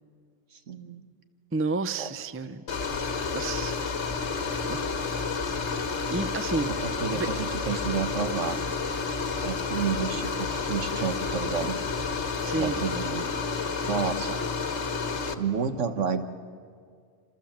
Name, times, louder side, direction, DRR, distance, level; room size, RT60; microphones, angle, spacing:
voice 1, 0.5-1.0 2.0-2.1 6.8-8.6 9.4-11.8 12.6-13.2 13.8-14.4 15.4-16.2, right 6 dB, 70° right, 8 dB, 1.6 m, -30 dB
voice 2, 1.5-2.9 3.3-3.8 4.7-4.8 5.4-5.5 6.1-6.7 7.1-7.3 12.4-12.8, right 3 dB, 15° right, 11 dB, 0.5 m, -31 dB
sound 1, 2.7-15.3, left 4 dB, 65° left, 1.7 m, -30 dB
sound 2, 2.7-13.3, left 3 dB, 30° left, 1.8 m, -44 dB
27.0 x 27.0 x 7.4 m, 2.1 s
omnidirectional pair, 1.3 m